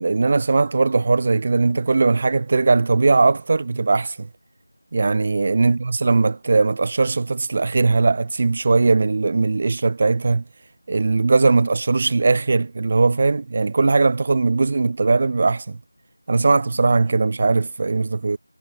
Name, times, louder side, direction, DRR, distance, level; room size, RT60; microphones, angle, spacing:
voice 1, 0.0-4.3 4.9-10.4 10.9-15.8 16.3-18.4, right 3 dB, 15° right, 5.2 m, -19 dB
figure-of-eight pair, 180°, 0 cm